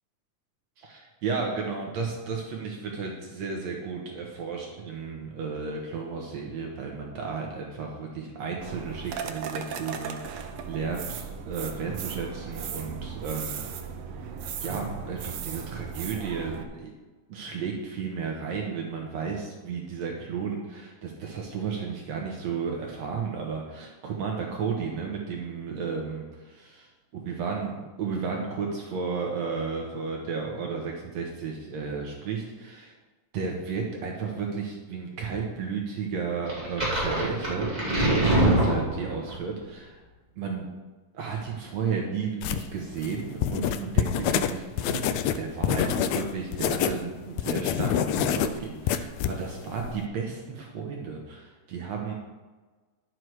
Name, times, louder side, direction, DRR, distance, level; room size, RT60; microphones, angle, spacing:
voice 1, 0.8-13.6 14.6-16.9 17.3-26.9 27.1-32.9 33.3-37.7 38.1-40.0 40.4-40.7 41.1-45.0 45.4-52.1, right 5 dB, 65° right, 0 dB, 2.1 m, -33 dB
sound 1, 8.6-16.6, right 6 dB, 80° right, 1.2 m, -36 dB
sound 2, 36.5-39.4, right 1 dB, 15° right, 2.9 m, -24 dB
sound 3, 42.4-47.0 47.3-50.0, left 9 dB, 80° left, 1.6 m, -26 dB
11.0 x 7.8 x 4.7 m, 1.3 s
omnidirectional pair, 3.7 m